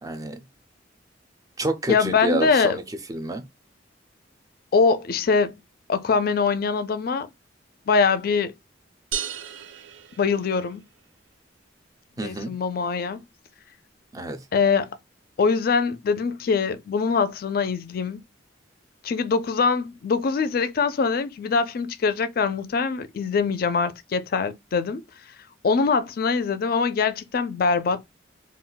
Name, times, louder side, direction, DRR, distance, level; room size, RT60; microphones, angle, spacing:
voice 1, 0.0-0.4 1.6-2.8 3.1-3.4 12.2-12.5 14.1-14.4, right 2 dB, 20° right, 0.4 m, -28 dB
voice 2, 1.9-2.8 4.7-5.6 5.9-7.3 7.9-8.5 10.2-10.8 12.2-13.2 14.5-14.9 15.4-18.2 19.0-25.0 25.6-28.1, left 5 dB, 50° left, 0.4 m, -23 dB
sound 1, 9.1-11.0, right 8 dB, 85° right, 0.4 m, -34 dB
2.3 x 2.2 x 3.8 m
head